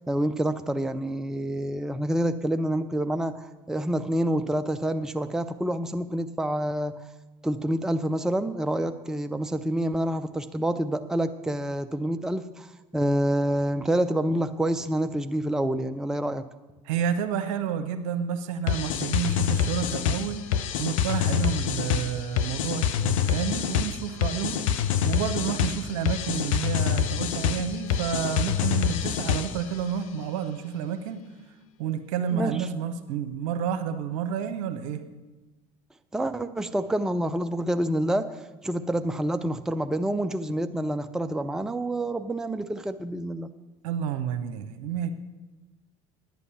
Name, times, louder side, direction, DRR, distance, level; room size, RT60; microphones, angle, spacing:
voice 1, 0.1-7.0 7.4-16.4 32.3-32.6 36.1-38.4 38.6-43.5, right 1 dB, 5° right, 9 dB, 0.5 m, -27 dB
voice 2, 16.8-20.4 20.8-24.6 25.0-31.2 31.8-35.0 43.8-45.1, right 8 dB, 70° right, 8 dB, 0.9 m, -30 dB
sound 1, 18.7-29.7, left 8 dB, 75° left, 0.6 m, -26 dB
10.5 x 8.3 x 5.6 m, 1.1 s
hypercardioid pair, 70°, 17 cm